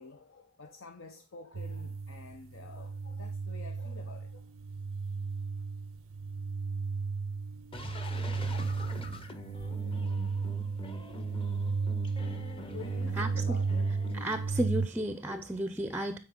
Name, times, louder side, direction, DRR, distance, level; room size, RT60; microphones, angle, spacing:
voice 1, 0.0-4.5 12.7-14.6 15.2-15.7 16.0-16.1, left 4 dB, 80° left, 0.8 m, -49 dB
sound 1, 1.5-14.9, right 4 dB, 80° right, 0.4 m, -34 dB
sound 2, 7.7-14.3, equal, 30° left, 0.9 m, -43 dB
voice 2, 13.2-13.6 14.1-16.2, right 1 dB, 10° right, 0.5 m, -33 dB
9.2 x 4.5 x 3.7 m
head